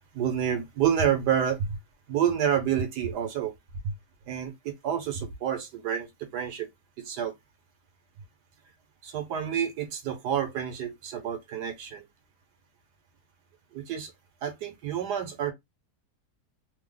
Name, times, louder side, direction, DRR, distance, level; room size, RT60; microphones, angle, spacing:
voice 1, 0.1-1.6 2.1-3.5 3.8-3.9 4.3-6.7 7.0-7.3 9.0-12.0 13.7-14.1 14.4-15.5, right 9 dB, 75° right, 1.3 m, -28 dB
3.2 x 2.1 x 3.7 m
omnidirectional pair, 1.8 m